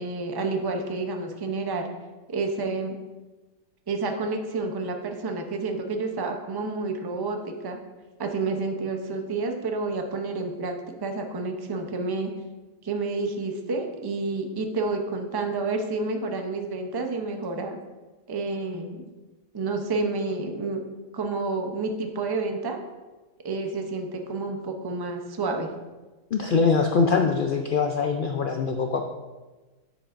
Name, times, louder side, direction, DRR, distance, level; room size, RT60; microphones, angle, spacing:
voice 1, 0.0-1.9 2.3-3.0 3.9-7.8 8.2-12.3 12.8-17.8 18.3-19.0 19.5-20.8 21.1-22.8 23.4-25.7, right 3 dB, 30° right, 4 dB, 0.4 m, -29 dB
voice 2, 26.3-29.1, left 5 dB, 80° left, 4 dB, 0.4 m, -23 dB
9.4 x 7.0 x 2.5 m, 1.2 s
omnidirectional pair, 1.5 m